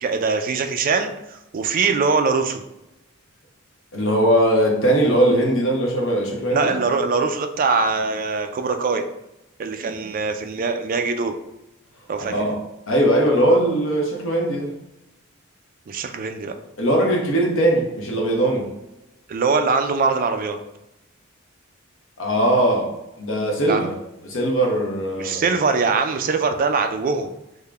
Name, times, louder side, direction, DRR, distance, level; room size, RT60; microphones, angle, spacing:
voice 1, 0.0-2.6 6.5-9.0 9.6-11.3 12.1-12.5 15.9-16.5 19.3-20.6 23.7-23.8 25.2-27.3, right 4 dB, 40° right, 6 dB, 0.3 m, -22 dB
voice 2, 3.9-6.8 12.3-12.6 12.9-14.7 16.8-18.7 22.2-22.9 23.2-23.9 24.2-25.4, right 1 dB, 65° left, 0 dB, 0.9 m, -20 dB
3.7 x 2.1 x 3.4 m, 0.92 s
head